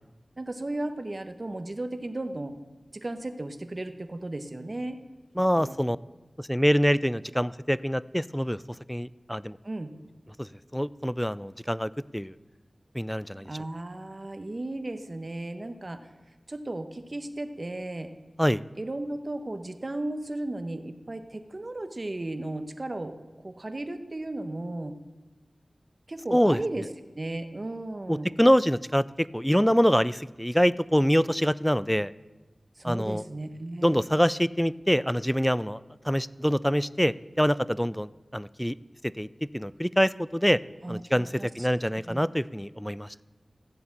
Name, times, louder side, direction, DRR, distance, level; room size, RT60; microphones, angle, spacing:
voice 1, 0.4-2.5 2.9-5.0 5.6-5.8 9.6-9.9 13.4-16.1 16.5-18.1 18.8-25.0 26.1-26.9 27.2-28.3 32.8-34.0 40.8-41.7 42.1-42.2, right 2 dB, 45° right, 8 dB, 1.1 m, -35 dB
voice 2, 5.4-6.0 6.4-8.6 8.9-9.6 10.4-10.5 10.7-12.3 12.9-13.5 18.4-18.6 26.3-26.6 28.1-32.1 32.8-33.2 33.8-35.8 36.1-38.7 39.2-39.3 39.5-40.6 40.9-41.3 41.6-43.2, equal, 5° left, 19 dB, 0.4 m, -25 dB
15.0 x 7.0 x 8.8 m, 1.1 s
wide cardioid pair, 75°, 0 cm